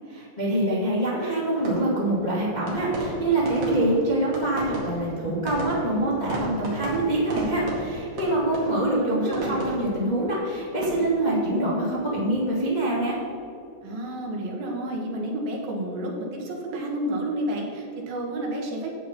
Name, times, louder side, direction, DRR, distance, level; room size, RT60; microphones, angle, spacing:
voice 1, 0.1-13.2, right 1 dB, 20° left, -6 dB, 1.1 m, -25 dB
sound 1, 1.5-12.6 12.9-13.4, right 1 dB, 45° right, 2.6 m, -36 dB
voice 2, 8.9-9.7 13.8-18.9, right 1 dB, 70° right, -1 dB, 3.3 m, -30 dB
11.0 x 8.3 x 4.4 m, 2.7 s
omnidirectional pair, 4.5 m